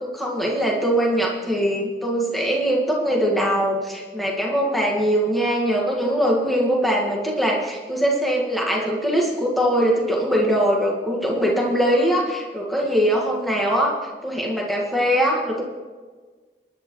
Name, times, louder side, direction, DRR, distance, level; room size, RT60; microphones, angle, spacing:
voice 1, 0.0-14.0 14.2-15.6, equal, ahead, -2 dB, 1.8 m, -22 dB
21.0 x 11.0 x 3.1 m, 1.4 s
head